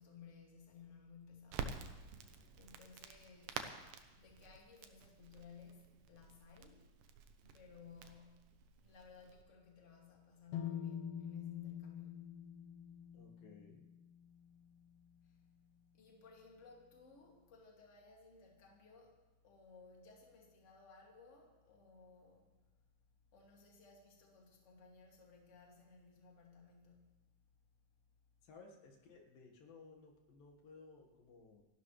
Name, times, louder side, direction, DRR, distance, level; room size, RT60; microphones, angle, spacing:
voice 1, 0.0-1.8 2.6-3.6 4.2-6.9 7.4-12.4 15.2-15.4 15.9-22.5 23.3-27.2, left 5 dB, 25° left, -1 dB, 2.3 m, -59 dB
Crackle, 1.5-9.4, right 6 dB, 85° right, 2.7 m, -50 dB
sound 1, 10.5-14.5, left 7 dB, 65° left, 2.0 m, -46 dB
voice 2, 13.1-13.9 28.4-31.7, left 4 dB, 85° left, 0 dB, 3.5 m, -59 dB
27.5 x 12.0 x 3.3 m, 1.2 s
omnidirectional pair, 3.9 m